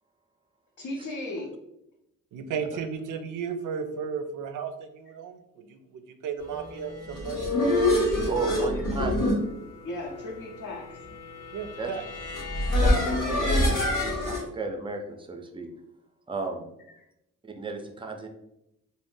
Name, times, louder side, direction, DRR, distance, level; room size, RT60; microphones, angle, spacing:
voice 1, 0.8-1.5 7.9-8.9 9.6-11.1, left 2 dB, 70° left, -3 dB, 0.7 m, -37 dB
voice 2, 2.3-7.5 11.5-12.0, right 6 dB, 85° right, 8 dB, 0.5 m, -34 dB
sound 1, 6.9-14.4, left 1 dB, 85° left, 1.0 m, -26 dB
voice 3, 8.1-9.2 11.8-11.9 12.8-15.7 16.3-16.7 17.4-18.3, right 4 dB, 15° right, 4 dB, 0.4 m, -34 dB
2.5 x 2.1 x 3.6 m, 0.84 s
cardioid pair, 85°, 31 cm